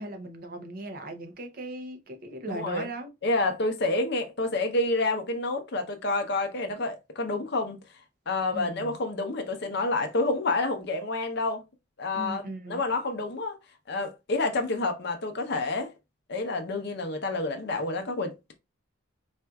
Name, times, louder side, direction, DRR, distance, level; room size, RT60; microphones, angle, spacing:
voice 1, 0.0-3.1 8.5-9.0 12.1-12.8, right 2 dB, 45° right, 0.6 m, -38 dB
voice 2, 2.5-2.9 3.2-7.8 8.3-11.6 12.0-13.6 13.9-15.9 16.3-18.6, left 2 dB, 55° left, 0.6 m, -29 dB
4.2 x 2.4 x 2.3 m
head